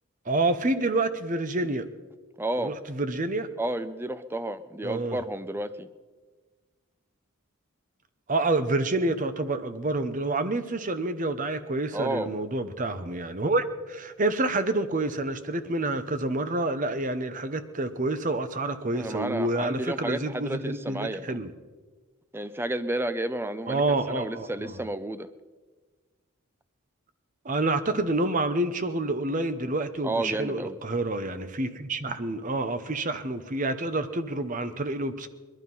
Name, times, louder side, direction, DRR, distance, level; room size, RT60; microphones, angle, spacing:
voice 1, 0.3-1.9 2.6-3.5 4.8-5.2 8.3-21.5 23.7-24.8 27.4-35.3, right 2 dB, 35° right, 10 dB, 0.9 m, -28 dB
voice 2, 2.4-2.7 3.6-5.9 11.9-12.3 18.9-21.4 22.3-25.3 30.0-30.8, right 1 dB, 10° right, 12 dB, 0.5 m, -31 dB
20.5 x 12.0 x 5.5 m, 1.4 s
head